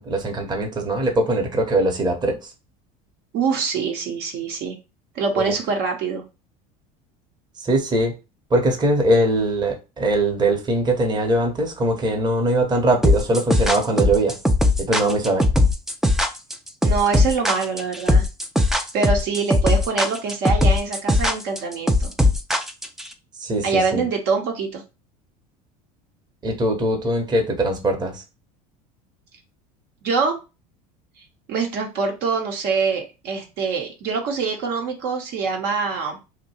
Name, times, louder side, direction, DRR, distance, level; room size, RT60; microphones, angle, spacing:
voice 1, 0.0-2.5 5.4-5.5 7.6-8.1 8.5-14.4 14.8-15.5 23.4-24.0 26.4-28.2, right 1 dB, 20° right, 0.9 m, -21 dB
voice 2, 3.3-4.8 5.1-6.2 16.8-18.2 18.9-22.1 23.6-24.8 30.0-30.4 31.5-36.2, right 5 dB, 60° right, 0.9 m, -24 dB
sound 1, 13.0-23.1, left 2 dB, ahead, 0.3 m, -19 dB
2.7 x 2.2 x 4.1 m
supercardioid pair, 105°, 19 cm